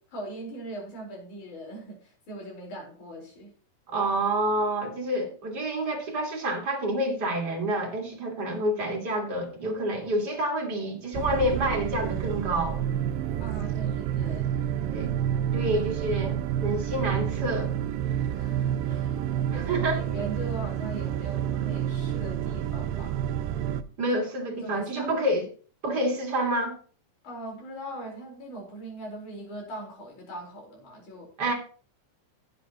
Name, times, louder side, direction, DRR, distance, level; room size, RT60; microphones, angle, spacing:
voice 1, 0.1-3.5 13.4-14.5 18.3-23.3 24.5-25.3 27.2-31.3, right 1 dB, 60° left, 5.8 m, -40 dB
voice 2, 3.9-12.9 14.9-15.2 15.5-17.7 19.5-20.0 24.0-25.5 25.8-26.8 31.4-31.5, right 1 dB, 35° right, 2.4 m, -28 dB
sound 1, 11.1-23.8, right 10 dB, 90° right, 2.4 m, -29 dB
16.5 x 8.1 x 3.0 m
omnidirectional pair, 3.9 m